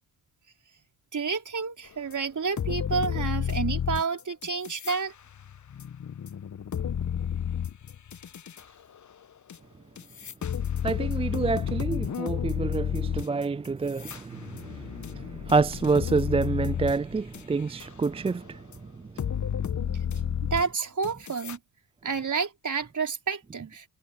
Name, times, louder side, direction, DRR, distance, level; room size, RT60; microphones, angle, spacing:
voice 1, 1.1-5.1 20.4-21.6 22.0-23.9, right 5 dB, 40° right, 5.1 m, -30 dB
sound 1, 2.1-2.2 2.6-5.0 5.3-8.6 9.5-9.6 10.0-17.4 17.8-18.3 18.7-18.8 19.2-21.6, left 8 dB, 40° left, 1.3 m, -31 dB
voice 2, 10.8-18.6, right 4 dB, 15° right, 0.4 m, -28 dB
hypercardioid pair, 45°, 44 cm